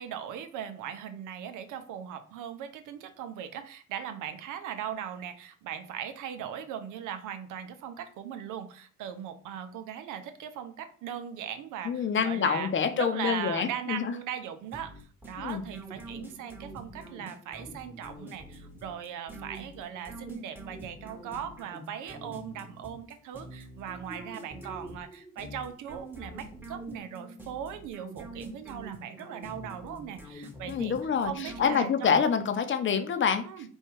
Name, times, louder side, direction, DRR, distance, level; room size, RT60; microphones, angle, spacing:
voice 1, 0.0-31.0 31.2-32.2 33.4-33.7, right 9 dB, 90° right, 8 dB, 0.7 m, -39 dB
voice 2, 11.8-14.1 15.4-15.7 30.7-33.5, left 6 dB, 40° left, 8 dB, 0.7 m, -27 dB
sound 1, 14.7-32.2, right 1 dB, 5° right, 1.0 m, -45 dB
4.5 x 2.4 x 4.5 m, 0.43 s
cardioid pair, 90°, 30 cm